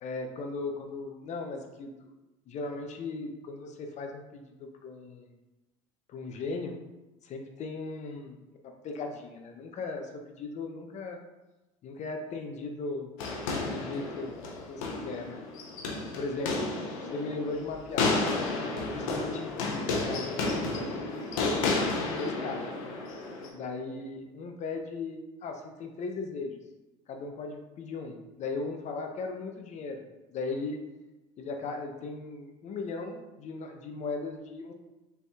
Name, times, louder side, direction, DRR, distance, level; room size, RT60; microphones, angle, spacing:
voice 1, 0.0-2.1 2.5-5.3 6.1-6.8 7.2-11.2 11.8-13.2 13.7-15.4 16.1-16.7 17.1-18.3 18.9-21.8 22.0-22.9 23.5-26.6 27.1-30.0 30.3-30.8 31.4-34.7, left 3 dB, 45° left, 4 dB, 0.5 m, -37 dB
sound 1, 13.2-23.5, left 3 dB, 80° left, 0.7 m, -32 dB
4.0 x 3.3 x 2.3 m, 1.1 s
hypercardioid pair, 80°, 17 cm